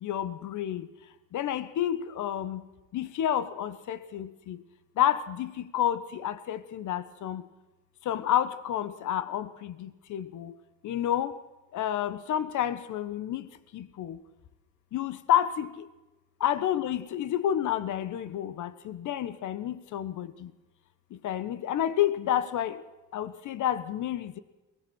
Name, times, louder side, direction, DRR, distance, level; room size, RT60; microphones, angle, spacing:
voice 1, 0.0-0.9 1.3-2.6 2.9-4.6 5.0-7.4 8.0-10.5 10.8-11.3 11.7-14.2 14.9-15.8 16.4-20.5 21.2-22.8 23.1-24.4, left 11 dB, 75° left, 14 dB, 1.3 m, -30 dB
23.0 x 18.5 x 6.4 m, 1.1 s
cardioid pair, 90°, 30 cm